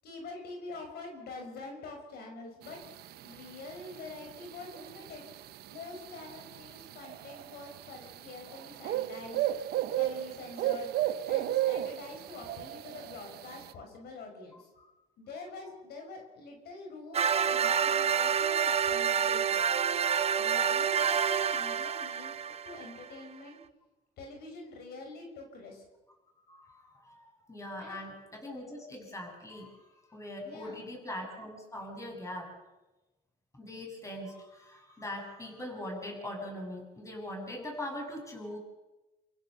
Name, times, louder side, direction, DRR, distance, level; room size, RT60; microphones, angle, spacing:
voice 1, 0.0-2.8 3.2-5.3 5.7-9.4 9.9-10.9 11.3-14.7 15.2-19.6 19.9-23.6 24.2-25.8 27.8-28.1 30.4-30.9, left 3 dB, 70° left, 2 dB, 6.0 m, -45 dB
sound 1, 2.6-13.7, right 13 dB, 70° right, 1.0 m, -35 dB
voice 2, 14.5-14.9 26.5-32.5 33.5-38.6, left 1 dB, 20° left, 1 dB, 7.8 m, -41 dB
sound 2, 17.1-23.1, right 7 dB, 35° right, 1.0 m, -28 dB
29.0 x 16.0 x 6.9 m, 1.1 s
cardioid pair, 110°, 17 cm